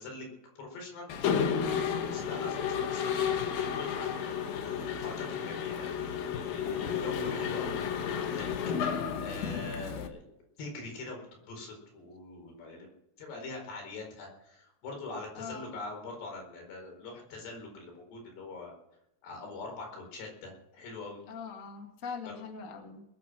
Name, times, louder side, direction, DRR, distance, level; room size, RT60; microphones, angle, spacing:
voice 1, 0.0-1.7 2.1-4.1 4.4-8.5 8.8-10.3 10.6-12.9 13.2-18.7 19.2-21.2 22.2-22.3, left 3 dB, 85° left, 2 dB, 6.6 m, -43 dB
Mechanisms, 1.1-10.1, left 7 dB, 65° left, 2.7 m, -32 dB
voice 2, 15.3-15.7 21.3-23.0, left 5 dB, 40° left, 4 dB, 1.1 m, -42 dB
21.0 x 9.1 x 6.1 m, 0.83 s
omnidirectional pair, 4.7 m